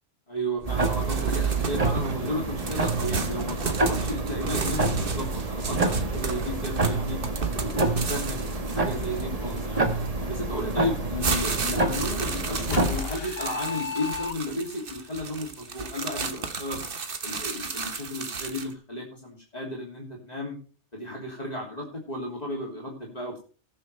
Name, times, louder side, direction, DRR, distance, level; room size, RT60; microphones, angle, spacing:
voice 1, 0.3-7.2 7.6-9.9 10.3-16.8 17.2-20.6 20.9-23.4, left 1 dB, 35° left, -3 dB, 3.1 m, -34 dB
sound 1, 0.6-10.1 10.7-18.7, right 5 dB, 50° right, 1.3 m, -33 dB
sound 2, 0.7-13.0, right 2 dB, 35° right, 1.5 m, -28 dB
sound 3, 12.7-14.8, left 7 dB, 60° left, 1.0 m, -33 dB
20.5 x 7.1 x 3.3 m, 0.38 s
omnidirectional pair, 1.2 m